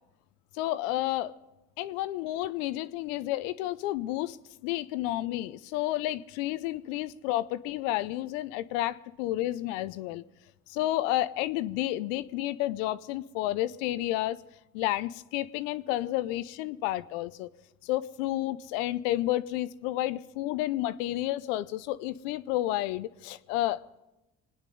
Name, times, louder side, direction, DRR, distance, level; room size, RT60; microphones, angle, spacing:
voice 1, 0.5-1.3 1.8-4.4 4.6-10.2 10.7-14.4 14.7-17.5 17.8-24.0, left 15 dB, 85° left, 0.7 m, -31 dB
25.5 x 9.7 x 5.4 m
hypercardioid pair, 55°, 38 cm